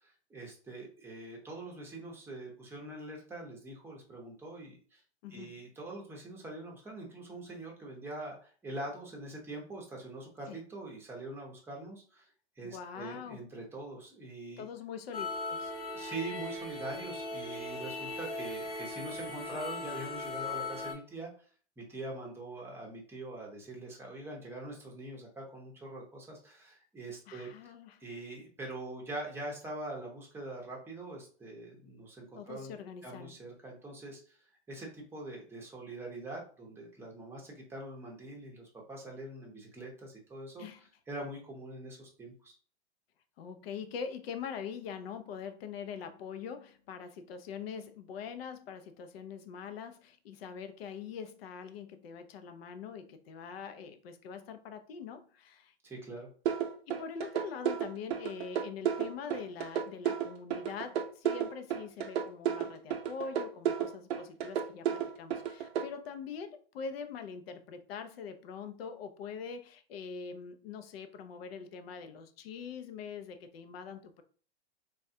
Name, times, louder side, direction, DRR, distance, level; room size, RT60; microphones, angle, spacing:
voice 1, 0.0-5.0 5.3-12.3 12.6-14.7 15.7-21.3 21.8-27.5 28.0-32.7 33.0-34.4 34.7-40.6 41.1-42.5 55.8-56.3, right 2 dB, 5° right, 0.8 m, -43 dB
voice 2, 5.2-5.5 10.5-10.6 12.6-13.4 14.6-15.7 27.3-28.0 32.3-33.4 40.6-40.9 43.4-55.7 56.9-74.2, left 6 dB, 60° left, 0.6 m, -43 dB
sound 1, 15.1-20.9, left 2 dB, 15° left, 1.0 m, -38 dB
sound 2, 56.5-65.8, right 9 dB, 65° right, 0.6 m, -32 dB
3.5 x 2.3 x 2.6 m
hypercardioid pair, 125°, 34 cm